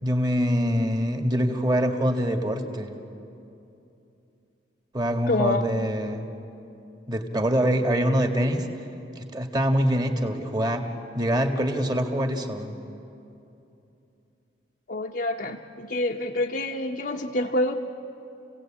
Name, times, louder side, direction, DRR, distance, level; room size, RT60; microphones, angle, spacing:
voice 1, 0.0-2.9 4.9-6.3 7.1-8.7 9.2-10.8 11.1-12.8, equal, 25° right, 4 dB, 1.8 m, -24 dB
voice 2, 5.3-5.7 14.9-17.8, left 2 dB, 60° left, 0 dB, 1.0 m, -27 dB
30.0 x 17.0 x 8.8 m, 2.8 s
head